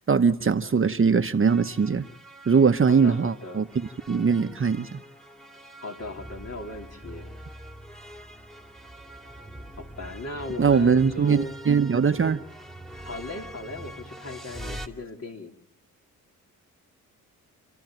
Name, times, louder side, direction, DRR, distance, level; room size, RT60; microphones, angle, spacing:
voice 1, 0.1-2.1 2.5-5.0 10.6-12.4, right 5 dB, 35° right, 1.0 m, -21 dB
sound 1, 1.5-14.9, right 1 dB, ahead, 2.4 m, -44 dB
voice 2, 2.9-3.7 5.8-7.3 9.8-11.6 13.0-15.5, left 2 dB, 45° left, 4.0 m, -37 dB
29.0 x 14.5 x 9.2 m
supercardioid pair, 60°, 36 cm